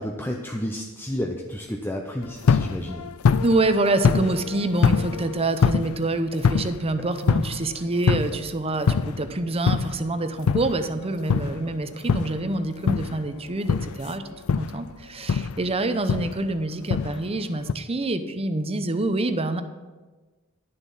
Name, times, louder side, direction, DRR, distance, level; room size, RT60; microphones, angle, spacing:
voice 1, 0.0-3.0, equal, 10° left, 1 dB, 0.6 m, -31 dB
sound 1, 2.2-6.0 6.4-8.5 8.8-9.4 9.7-12.5 12.9-13.3 13.7-14.9 15.3-15.7 16.1-16.5 16.9-17.3 17.6-17.7, left 5 dB, 85° left, 0.4 m, -24 dB
voice 2, 3.4-14.2 14.6-19.6, right 2 dB, 30° right, 9 dB, 0.7 m, -26 dB
11.5 x 7.2 x 5.6 m, 1.3 s
head